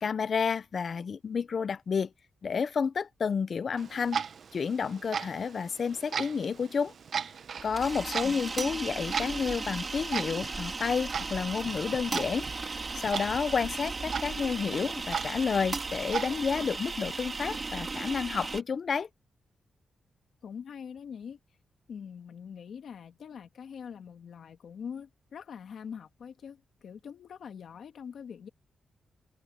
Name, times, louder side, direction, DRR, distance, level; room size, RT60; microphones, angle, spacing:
voice 1, 0.0-2.1 2.4-4.2 4.5-6.9 7.6-19.1, left 6 dB, 50° left, 0.8 m, -30 dB
Clock, 3.8-16.3, right 6 dB, 55° right, 1.0 m, -38 dB
sound 1, 7.6-18.6, right 3 dB, 30° right, 4.3 m, -36 dB
voice 2, 8.2-8.6 20.4-21.4 21.9-28.5, left 7 dB, 70° left, 2.1 m, -43 dB
cardioid pair, 115°, 0 cm